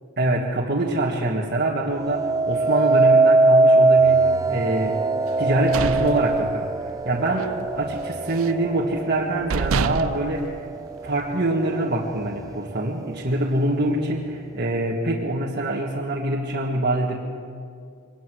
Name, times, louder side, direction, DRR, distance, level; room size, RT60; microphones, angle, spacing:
voice 1, 0.2-5.0 5.4-6.7 7.1-10.5 11.0-17.2, right 1 dB, 45° right, -4 dB, 1.7 m, -24 dB
sound 1, 2.0-11.1 11.7-12.1, right 3 dB, 15° right, 0.4 m, -21 dB
sound 2, 5.4-7.0 7.3-7.6 7.9-8.7 9.1-9.2 9.5-11.3, right 5 dB, 65° right, 0.5 m, -28 dB
23.0 x 19.0 x 6.3 m, 2.3 s
head